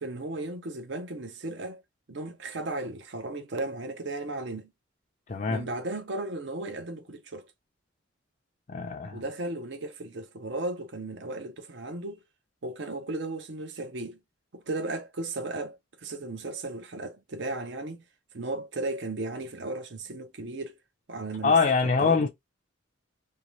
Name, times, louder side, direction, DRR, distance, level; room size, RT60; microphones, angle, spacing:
voice 1, 0.0-1.8 2.1-4.7 5.5-7.5 9.1-12.2 12.6-14.2 14.5-18.0 18.3-20.8 21.1-22.3, right 2 dB, 60° right, 0.6 m, -35 dB
voice 2, 5.3-5.7 8.7-9.2 21.4-22.3, left 4 dB, 40° left, 0.4 m, -24 dB
2.7 x 2.2 x 3.0 m
head